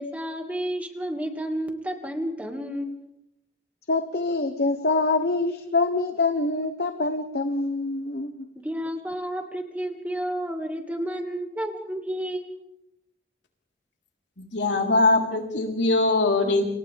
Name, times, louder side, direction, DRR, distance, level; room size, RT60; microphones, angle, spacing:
voice 1, 0.0-3.1 8.6-12.6, equal, 10° right, 4 dB, 2.0 m, -31 dB
voice 2, 3.9-8.5, left 3 dB, 60° left, 8 dB, 1.0 m, -25 dB
voice 3, 14.4-16.6, left 2 dB, 90° left, 1 dB, 4.0 m, -22 dB
29.5 x 28.0 x 3.5 m, 0.83 s
head